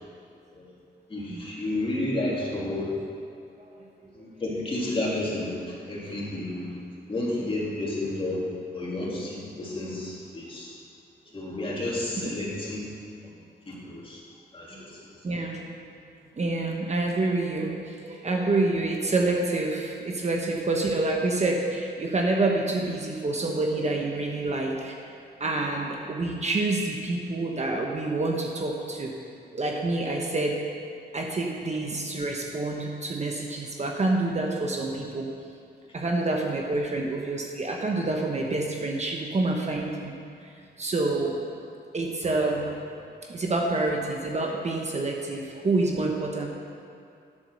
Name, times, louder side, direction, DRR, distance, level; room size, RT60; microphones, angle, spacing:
voice 1, 1.1-2.9 4.1-6.7 7.1-8.4 8.7-10.7 11.3-12.8 13.7-14.2 14.5-15.0, left 1 dB, 30° left, -6 dB, 2.9 m, -31 dB
voice 2, 15.2-15.6 16.4-29.1 29.5-30.5 31.1-35.3 35.9-40.1 40.8-41.4 41.9-42.6 43.3-46.5, right 2 dB, 40° right, 0 dB, 1.1 m, -27 dB
10.0 x 8.5 x 6.4 m, 2.4 s
wide cardioid pair, 135°, 18 cm